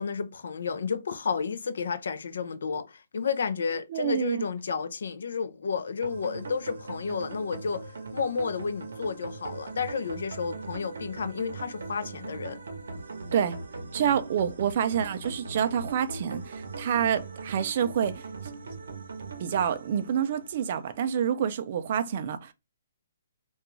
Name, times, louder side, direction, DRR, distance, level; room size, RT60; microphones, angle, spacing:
voice 1, 0.0-12.6, left 5 dB, 70° left, 0.4 m, -31 dB
voice 2, 3.9-4.4 13.3-13.6 13.9-18.3 19.4-22.5, right 8 dB, 40° right, 0.4 m, -27 dB
sound 1, 6.0-21.1, right 3 dB, 75° right, 0.7 m, -40 dB
2.4 x 2.3 x 3.0 m
hypercardioid pair, 165°, 0 cm